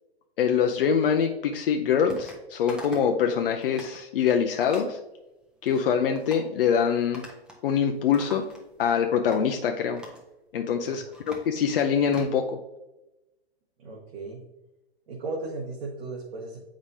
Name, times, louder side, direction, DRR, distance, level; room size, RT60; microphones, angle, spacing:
voice 1, 0.4-5.0 5.6-7.2 7.6-8.5 8.8-10.0 10.5-12.6, left 7 dB, 60° left, 4 dB, 0.6 m, -24 dB
sound 1, 2.1-2.4 2.7-3.2 3.5-4.0 4.6-4.9 5.4-5.8 6.2-6.5 7.1-7.7 7.9-8.9 9.3-9.4 10.0-10.3 10.7-12.3, equal, 5° right, 0.7 m, -45 dB
voice 2, 13.8-14.4 15.1-16.6, right 3 dB, 60° right, -4 dB, 1.4 m, -36 dB
7.1 x 5.0 x 2.7 m, 0.96 s
hypercardioid pair, 125°, 32 cm